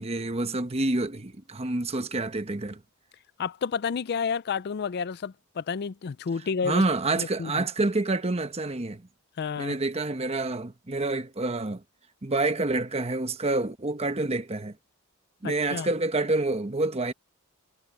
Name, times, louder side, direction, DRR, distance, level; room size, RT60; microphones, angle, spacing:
voice 1, 0.0-2.8 6.6-9.0 9.6-11.8 12.2-14.7 15.4-17.1, right 2 dB, 30° right, 1.0 m, -28 dB
voice 2, 3.4-6.8 7.2-7.7 9.4-9.7 15.4-15.9, left 6 dB, 45° left, 0.4 m, -30 dB
head